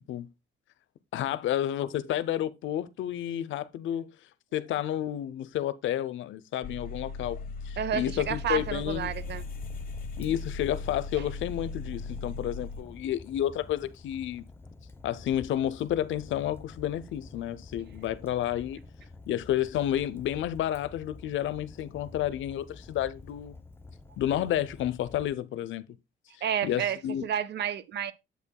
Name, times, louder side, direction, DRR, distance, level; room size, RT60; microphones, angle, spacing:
voice 1, 1.1-4.1 4.5-7.4 7.7-9.1 10.2-14.4 15.0-18.8 19.3-23.6 24.2-25.9 26.6-27.3, left 11 dB, 75° left, 0.6 m, -30 dB
sound 1, 6.6-12.8, left 4 dB, 45° left, 1.1 m, -38 dB
voice 2, 7.8-9.4 26.4-28.1, right 9 dB, 60° right, 0.7 m, -31 dB
Fire, 8.1-25.3, left 3 dB, 10° left, 0.8 m, -48 dB
8.2 x 7.6 x 2.2 m
cardioid pair, 90°, 20 cm